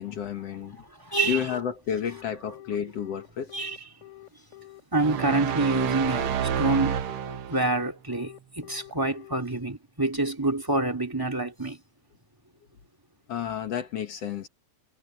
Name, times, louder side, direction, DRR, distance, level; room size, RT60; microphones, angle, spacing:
voice 1, 0.0-0.8 1.2-3.5 13.3-14.5, left 8 dB, 55° left, 2.3 m, -31 dB
voice 2, 1.0-1.5 3.5-3.8 4.9-7.0 7.5-11.8, right 2 dB, 5° right, 2.2 m, -27 dB
Telephone, 2.0-9.4, left 16 dB, 20° left, 6.0 m, -47 dB
sound 1, 5.0-7.8, right 9 dB, 60° right, 1.5 m, -29 dB
omnidirectional pair, 3.6 m